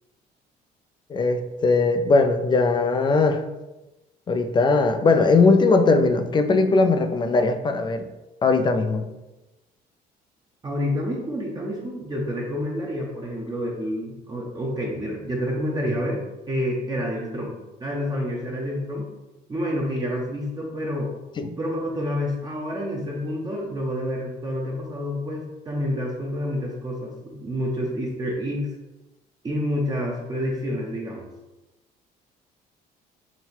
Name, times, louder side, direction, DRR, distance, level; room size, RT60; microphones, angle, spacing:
voice 1, 1.1-3.4 4.3-8.0 8.4-9.0 21.4-21.5, left 3 dB, 30° left, 7 dB, 0.3 m, -19 dB
voice 2, 10.6-19.1 19.5-21.1 21.6-28.7 29.4-31.3, equal, 25° right, -2 dB, 0.7 m, -28 dB
4.0 x 2.1 x 4.3 m, 1.0 s
cardioid pair, 110°, 17 cm